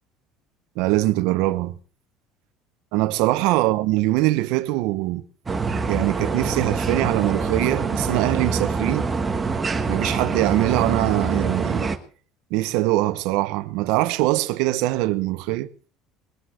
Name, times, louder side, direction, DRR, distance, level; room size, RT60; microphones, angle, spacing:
voice 1, 0.8-1.7 2.9-5.2 5.9-9.0 9.9-11.9 12.5-15.7, right 18 dB, 70° right, 1.0 m, -22 dB
sound 1, 5.5-12.0, right 4 dB, 15° right, 1.3 m, -25 dB
21.5 x 7.9 x 6.4 m
cardioid pair, 160°, 0 cm